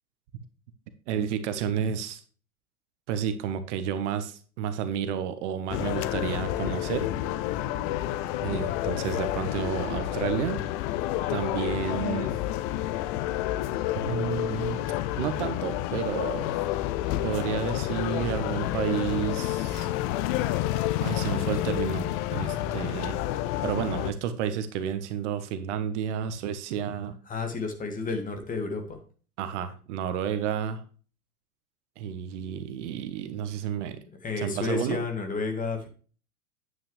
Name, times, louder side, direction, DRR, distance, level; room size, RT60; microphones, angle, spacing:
voice 1, 1.1-2.2 3.1-7.1 8.4-10.6 11.3-12.3 14.0-14.8 15.2-16.5 17.2-19.9 21.0-23.2 23.6-27.2 29.4-30.8 32.0-34.0 34.4-35.0, right 8 dB, 50° right, 10 dB, 1.3 m, -31 dB
sound 1, 5.7-24.1, left 14 dB, 35° left, 0.6 m, -29 dB
voice 2, 27.3-29.0 34.2-35.9, left 4 dB, 20° left, 5 dB, 2.1 m, -31 dB
9.6 x 8.8 x 3.3 m, 0.39 s
figure-of-eight pair, 100°, 45 cm